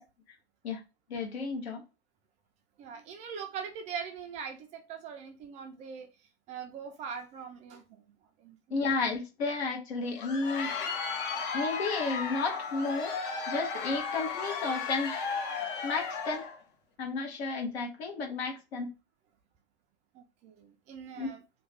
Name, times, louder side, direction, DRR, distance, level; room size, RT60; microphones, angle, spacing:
voice 1, 1.1-1.8 8.7-10.7 11.5-15.1 15.8-16.4 17.0-18.9 21.2-21.3, left 3 dB, 75° left, 1.2 m, -32 dB
voice 2, 2.8-6.1 6.5-8.0 8.4-8.6 20.1-21.4, right 6 dB, 20° right, 0.4 m, -42 dB
Crowd, 10.0-16.6, left 5 dB, 50° left, 0.8 m, -35 dB
2.9 x 2.3 x 4.1 m
hypercardioid pair, 120°, 33 cm